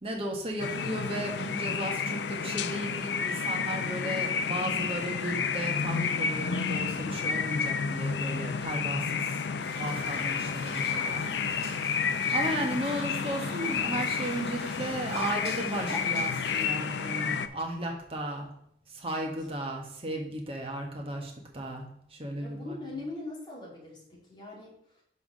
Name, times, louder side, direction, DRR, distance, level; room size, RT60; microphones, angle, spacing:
voice 1, 0.0-9.4 9.7-11.8 12.3-18.5 18.9-21.8 22.1-22.8, right 1 dB, 35° right, 1 dB, 1.4 m, -35 dB
sound 1, 0.6-17.5, left 6 dB, 75° left, 0.5 m, -31 dB
sound 2, 9.6-16.6, right 1 dB, 65° right, 2.2 m, -43 dB
voice 2, 22.4-25.0, left 2 dB, 25° left, -4 dB, 2.5 m, -42 dB
5.6 x 4.7 x 6.2 m, 0.71 s
head